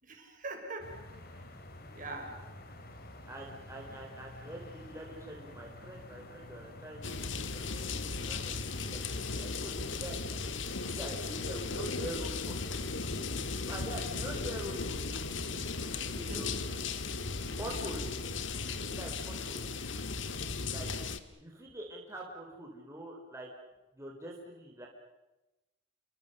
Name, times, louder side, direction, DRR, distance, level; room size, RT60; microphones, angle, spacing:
voice 1, 0.0-1.4 1.9-2.5 16.3-16.6, right 2 dB, 45° right, 4 dB, 5.2 m, -43 dB
sound 1, 0.8-20.5, left 1 dB, 50° left, 2.8 m, -50 dB
voice 2, 3.3-7.6 8.2-9.0 9.3-10.2 10.7-13.0 13.7-15.5 16.1-16.7 17.5-18.3 19.0-20.0 20.7-20.9 21.4-23.5 23.9-24.9, right 1 dB, 15° right, -1 dB, 3.8 m, -45 dB
sound 2, 7.0-21.2, left 4 dB, 75° left, 1.6 m, -36 dB
29.5 x 24.0 x 6.6 m, 1.0 s
head